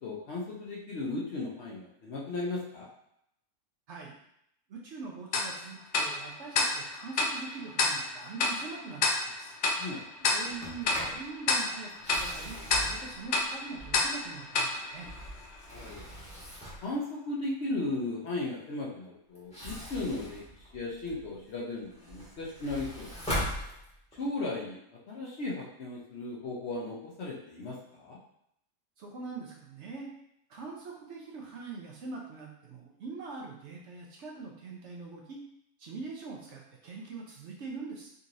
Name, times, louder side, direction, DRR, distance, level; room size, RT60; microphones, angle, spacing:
voice 1, 0.0-2.9 9.8-10.3 15.7-16.0 16.8-20.4 20.7-23.1 24.2-24.8 25.1-28.2, left 2 dB, 60° left, -3 dB, 0.9 m, -36 dB
voice 2, 4.7-9.6 10.3-15.1 29.0-30.1 30.5-35.4 35.8-38.1, right 4 dB, 65° right, -2 dB, 0.8 m, -43 dB
Tick-tock, 5.3-15.8, left 3 dB, 80° left, 0.4 m, -31 dB
Sliding door, 10.4-11.2 11.9-14.2 14.8-16.9 19.3-21.3 21.8-24.3, equal, 5° left, 0.9 m, -40 dB
3.8 x 2.9 x 2.5 m, 0.76 s
omnidirectional pair, 1.5 m